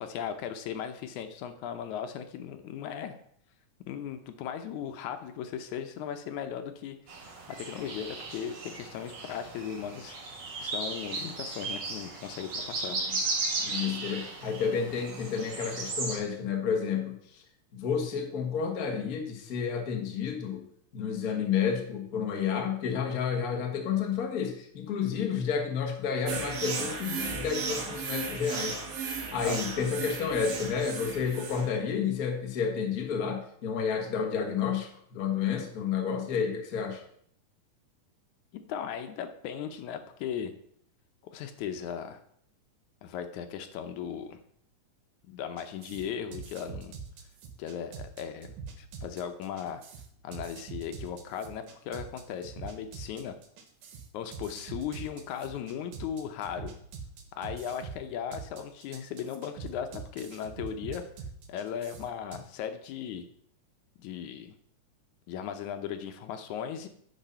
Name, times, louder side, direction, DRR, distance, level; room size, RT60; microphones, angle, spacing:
voice 1, 0.0-3.2 3.9-10.2 10.6-13.0 29.4-29.6 38.7-40.5 41.3-42.2 43.0-44.4 45.3-46.9 47.6-48.5 48.8-49.8 50.2-53.4 54.1-56.8 57.4-61.0 61.5-63.3 64.0-64.5 65.3-66.9, left 8 dB, 75° left, 8 dB, 2.1 m, -37 dB
sound 1, 7.1-16.2, right 3 dB, 45° right, 1.7 m, -36 dB
voice 2, 13.6-17.2 17.7-20.6 20.9-28.8 29.3-37.0, left 6 dB, 55° left, 3 dB, 1.0 m, -30 dB
sound 2, 26.3-31.8, right 5 dB, 75° right, 2.4 m, -35 dB
sound 3, 45.6-62.4, right 5 dB, 90° right, 2.7 m, -44 dB
9.0 x 5.5 x 5.6 m, 0.67 s
omnidirectional pair, 3.6 m